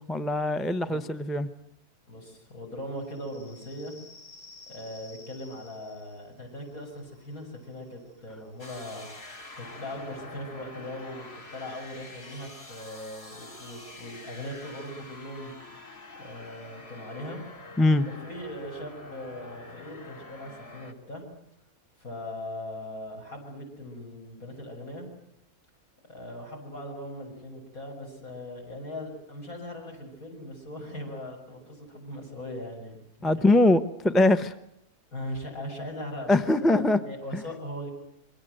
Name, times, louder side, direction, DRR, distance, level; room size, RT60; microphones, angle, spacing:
voice 1, 0.1-1.5 17.8-18.0 33.2-34.5 36.3-37.0 37.3-37.4, left 2 dB, ahead, 11 dB, 0.7 m, -22 dB
voice 2, 2.1-4.0 4.7-9.1 9.6-15.5 16.2-17.4 18.1-21.2 22.0-25.1 26.1-33.0 35.1-37.9, left 1 dB, 65° left, 4 dB, 7.1 m, -39 dB
sound 1, 3.0-10.3, left 3 dB, 85° left, 4.9 m, -54 dB
sound 2, 8.6-20.9, left 2 dB, 40° left, 2.7 m, -46 dB
27.5 x 23.5 x 7.9 m, 0.76 s
omnidirectional pair, 1.6 m